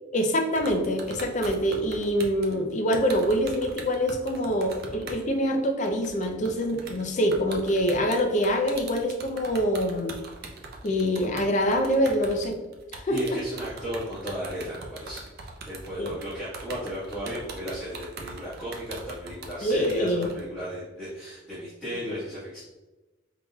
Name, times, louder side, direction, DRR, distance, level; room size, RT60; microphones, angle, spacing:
voice 1, 0.1-10.1 10.8-12.6 12.9-13.4 16.0-16.1 19.6-20.3, equal, 40° left, 3 dB, 0.5 m, -25 dB
sound 1, 0.6-5.2 5.5-5.6 5.8-20.4, right 3 dB, 55° right, 0.5 m, -41 dB
voice 2, 13.1-22.6, equal, 5° left, -13 dB, 1.3 m, -35 dB
5.3 x 2.9 x 2.3 m, 1.1 s
head